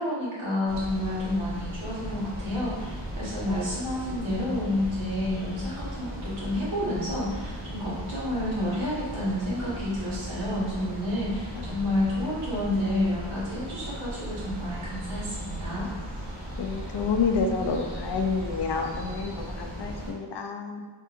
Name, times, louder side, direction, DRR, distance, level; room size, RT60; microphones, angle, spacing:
voice 1, 0.0-15.9, left 1 dB, 75° right, -8 dB, 1.4 m, -30 dB
sound 1, 0.6-20.1, equal, 55° right, 1.2 m, -37 dB
voice 2, 16.6-20.8, left 5 dB, 55° left, 4 dB, 0.5 m, -29 dB
3.6 x 2.6 x 2.5 m, 1.3 s
cardioid pair, 60°, 49 cm